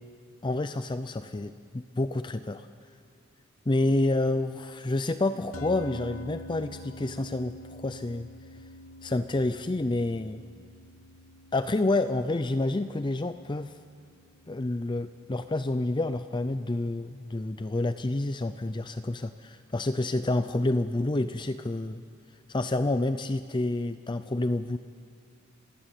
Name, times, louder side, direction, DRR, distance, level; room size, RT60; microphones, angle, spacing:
voice 1, 0.4-2.7 3.7-8.3 9.0-10.4 11.5-13.8 14.5-22.0 22.5-24.8, left 2 dB, 20° left, 11 dB, 0.5 m, -28 dB
sound 1, 5.5-16.0, left 1 dB, 85° left, 1.1 m, -47 dB
28.0 x 15.5 x 8.9 m, 2.3 s
head